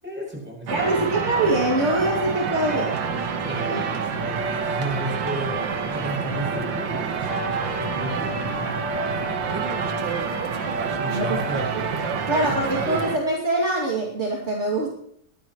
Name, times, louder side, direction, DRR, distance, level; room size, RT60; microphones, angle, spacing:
voice 1, 0.0-0.9 3.4-8.9 11.0-11.7 12.5-12.6, right 1 dB, 5° right, -4 dB, 7.1 m, -33 dB
voice 2, 0.7-3.0 3.7-3.8 11.1-11.4 11.7-11.8 12.3-14.9, right 2 dB, 40° right, -3 dB, 2.8 m, -24 dB
sound 1, 0.7-13.2, right 5 dB, 85° right, 2.0 m, -27 dB
Trumpet, 7.3-12.3, left 9 dB, 35° left, 1.4 m, -38 dB
22.0 x 15.5 x 3.1 m, 0.65 s
omnidirectional pair, 2.0 m